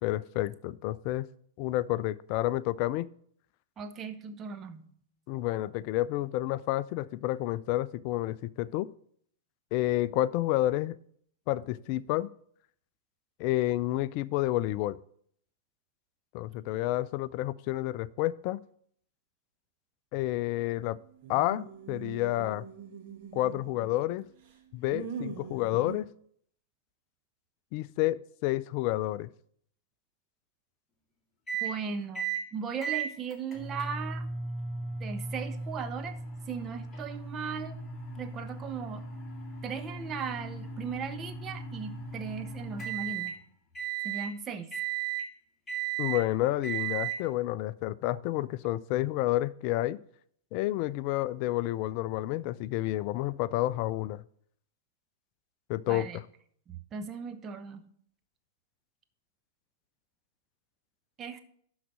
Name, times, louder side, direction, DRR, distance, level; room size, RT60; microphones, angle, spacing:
voice 1, 0.0-1.3 1.6-3.1 5.3-8.9 9.7-11.0 11.5-12.3 13.4-15.0 16.3-18.6 20.1-21.0 21.3-22.7 23.3-24.3 24.7-26.1 27.7-29.3 46.0-50.0 50.5-54.2 55.7-56.2, left 15 dB, 45° left, 19 dB, 0.4 m, -30 dB
voice 2, 3.8-4.9 31.6-32.2 32.5-34.3 35.0-36.1 36.5-37.8 38.2-39.0 39.6-43.3 44.0-44.7 55.9-56.2 56.7-57.8 61.2-61.4, right 6 dB, 25° right, 8 dB, 0.9 m, -37 dB
sound 1, 21.2-24.0 24.4-26.0, right 7 dB, 45° right, 2.3 m, -42 dB
sound 2, 31.5-31.7 32.1-32.4 32.8-43.3 43.7-44.3 44.7-45.3 45.7-46.2 46.6-47.2, right 6 dB, 15° left, 2.0 m, -36 dB
12.0 x 4.0 x 6.2 m, 0.64 s
figure-of-eight pair, 100°, 0 cm